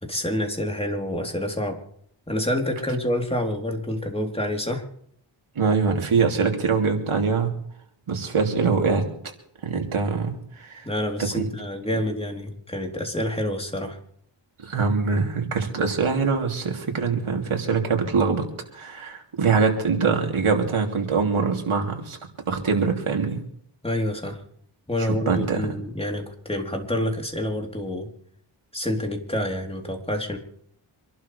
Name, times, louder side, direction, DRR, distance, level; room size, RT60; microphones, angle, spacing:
voice 1, 0.0-1.8 2.3-4.8 10.8-14.0 23.8-24.4 24.9-28.1 28.7-30.4, left 1 dB, 10° left, 2 dB, 3.6 m, -27 dB
voice 2, 5.5-7.6 8.1-9.1 9.6-10.9 11.2-11.5 14.6-18.4 18.7-22.2 22.5-23.4 25.0-25.7, right 5 dB, 85° right, 2 dB, 3.1 m, -23 dB
26.5 x 12.0 x 3.4 m, 0.67 s
wide cardioid pair, 65°, 48 cm